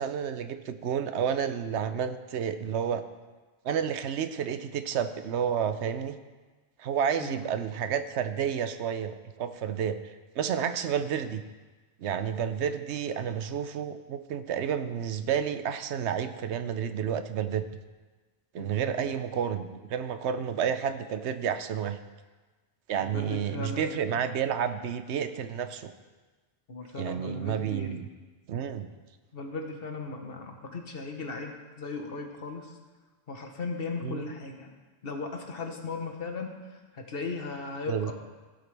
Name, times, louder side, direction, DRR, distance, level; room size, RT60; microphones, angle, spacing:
voice 1, 0.0-3.0 3.6-6.2 6.8-10.0 10.4-11.4 12.0-17.7 18.5-22.0 22.9-25.9 27.0-28.1 28.5-28.9 34.0-34.3 37.9-38.1, right 8 dB, 85° right, 10 dB, 1.0 m, -30 dB
voice 2, 7.1-7.5 18.6-18.7 23.0-24.1 26.7-28.0 29.3-32.7 33.3-34.7 35.0-36.5 36.9-38.1, left 3 dB, 60° left, 3 dB, 1.4 m, -37 dB
16.0 x 7.8 x 3.4 m, 1.3 s
omnidirectional pair, 1.1 m